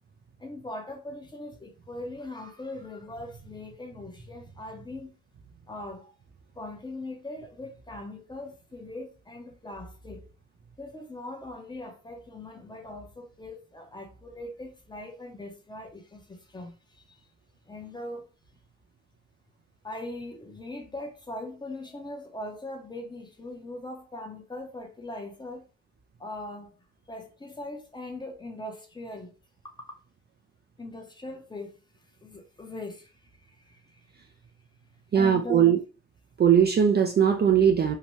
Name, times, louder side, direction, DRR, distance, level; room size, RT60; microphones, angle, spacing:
voice 1, 0.4-5.1 5.7-6.1 6.6-10.3 10.8-17.1 17.7-18.3 19.8-25.6 26.2-26.7 27.1-29.3 30.8-31.8 32.2-34.0 35.1-35.8, left 1 dB, 15° left, 0.8 m, -40 dB
voice 2, 35.1-35.8 36.4-38.0, right 8 dB, 35° right, 0.4 m, -20 dB
2.8 x 2.1 x 3.0 m
cardioid pair, 90°, 30 cm